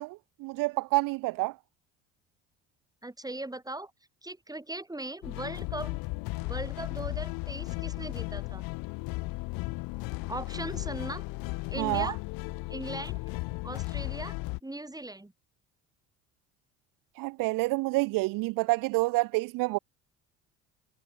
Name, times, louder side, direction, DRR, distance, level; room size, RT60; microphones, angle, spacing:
voice 1, 0.0-1.6 11.8-12.1 17.2-19.8, right 22 dB, 60° right, 0.9 m, -28 dB
voice 2, 3.0-3.9 4.2-6.0 6.3-8.6 10.3-11.2 11.7-12.2 12.7-13.2 13.6-14.4 14.6-15.3, right 2 dB, 10° right, 5.8 m, -39 dB
sound 1, 5.2-14.6, left 24 dB, 70° left, 3.0 m, -35 dB
hypercardioid pair, 60°, 37 cm